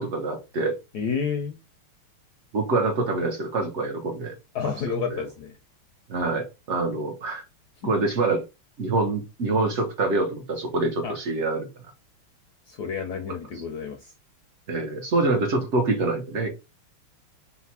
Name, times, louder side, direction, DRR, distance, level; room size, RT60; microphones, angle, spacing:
voice 1, 0.0-0.8 2.5-4.3 5.1-5.2 6.1-7.4 7.8-8.4 8.8-11.7 14.7-16.5, right 3 dB, 85° right, 0.6 m, -25 dB
voice 2, 0.9-1.6 4.5-5.6 11.0-11.1 12.7-14.1, left 6 dB, 70° left, 0.9 m, -30 dB
4.4 x 2.2 x 4.2 m
omnidirectional pair, 2.4 m